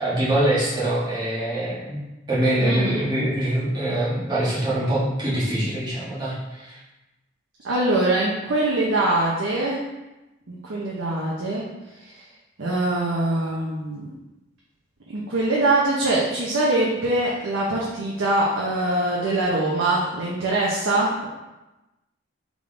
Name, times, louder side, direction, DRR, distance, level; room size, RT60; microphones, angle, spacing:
voice 1, 0.0-2.0 2.3-6.8, right 1 dB, 20° right, -9 dB, 1.4 m, -24 dB
voice 2, 2.6-3.0 7.6-9.8 10.5-11.6 12.0-12.1 12.6-14.1 15.1-21.3, right 2 dB, 85° right, -4 dB, 0.7 m, -23 dB
3.7 x 3.5 x 3.7 m, 1.0 s
head